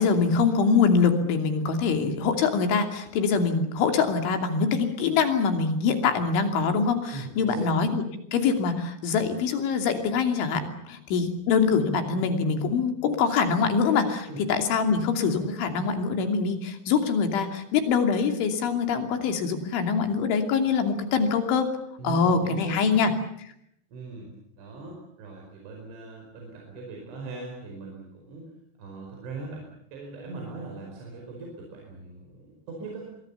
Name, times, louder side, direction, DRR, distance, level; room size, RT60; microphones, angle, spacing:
voice 1, 0.0-8.0 8.3-21.7 22.0-23.1, left 5 dB, 80° left, 6 dB, 5.2 m, -24 dB
voice 2, 7.1-7.7 14.3-14.4 22.0-23.2 23.9-24.3 24.6-28.5 28.8-33.1, right 3 dB, 80° right, 0 dB, 7.4 m, -40 dB
26.5 x 22.5 x 7.2 m, 0.74 s
omnidirectional pair, 5.4 m